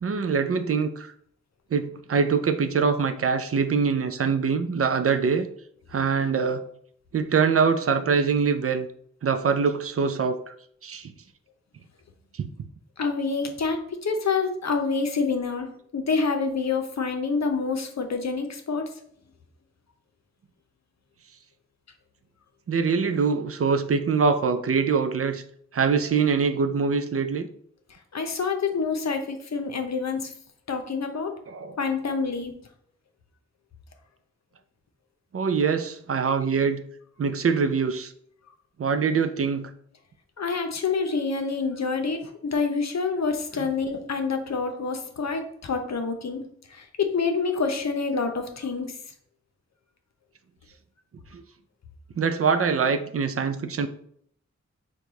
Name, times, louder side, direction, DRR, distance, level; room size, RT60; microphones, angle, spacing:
voice 1, 0.0-1.1 1.7-5.5 5.9-6.7 7.1-8.9 9.2-10.5 10.8-11.1 12.3-12.5 22.7-25.4 25.7-27.5 31.5-31.8 35.3-36.8 37.2-38.1 38.8-39.7 51.3-51.4 52.2-53.9, right 5 dB, 50° right, 0.4 m, -24 dB
voice 2, 13.0-18.9 28.1-30.3 30.7-31.4 31.8-32.5 40.4-49.0, left 4 dB, 65° left, 0.7 m, -27 dB
4.5 x 2.3 x 3.9 m
cardioid pair, 50°, 29 cm